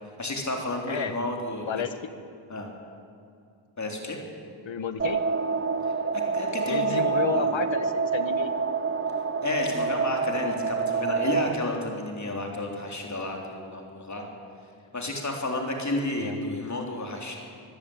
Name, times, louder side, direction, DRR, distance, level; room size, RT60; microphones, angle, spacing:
voice 1, 0.2-1.7 2.5-2.7 3.8-4.2 6.3-7.5 9.4-14.2 14.9-17.4, left 2 dB, 35° left, 1 dB, 3.5 m, -31 dB
voice 2, 4.6-5.2 6.6-8.5 16.2-16.7, left 7 dB, 70° left, 10 dB, 1.6 m, -31 dB
sound 1, 5.0-11.5, right 5 dB, 25° right, 1.0 m, -27 dB
25.0 x 15.5 x 8.7 m, 2.4 s
wide cardioid pair, 130°, 47 cm